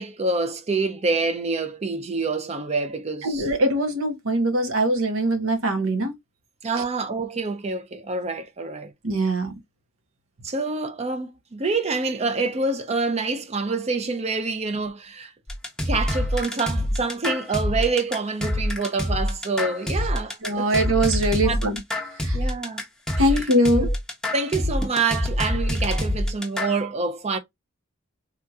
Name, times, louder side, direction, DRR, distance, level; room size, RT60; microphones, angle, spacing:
voice 1, 0.0-3.5 6.6-8.9 10.4-15.3 15.9-20.7 21.4-21.7 22.3-22.8 23.2-23.4 23.8-23.9 24.3-27.4, right 3 dB, 30° right, 0.5 m, -27 dB
voice 2, 3.2-6.1 9.0-9.5 20.4-21.8 22.2-22.4 23.2-23.9, right 1 dB, 90° right, 1.0 m, -22 dB
sound 1, 15.5-26.8, left 1 dB, 5° left, 0.7 m, -26 dB
3.6 x 2.8 x 2.3 m
head